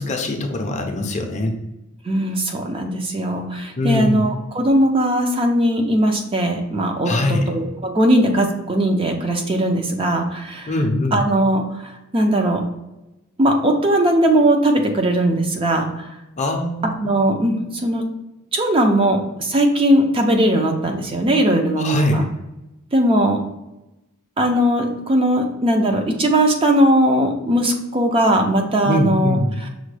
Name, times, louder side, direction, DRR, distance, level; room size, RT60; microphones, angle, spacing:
voice 1, 0.0-1.5 3.8-4.2 7.1-7.5 10.7-11.2 16.4-17.0 21.8-22.2 28.8-29.6, left 1 dB, 35° left, 3 dB, 0.5 m, -22 dB
voice 2, 2.1-10.7 11.1-12.6 13.4-16.1 17.0-18.0 18.5-22.3 22.9-23.4 24.4-29.4, right 1 dB, 25° right, 3 dB, 0.4 m, -19 dB
6.1 x 2.2 x 3.2 m, 0.96 s
head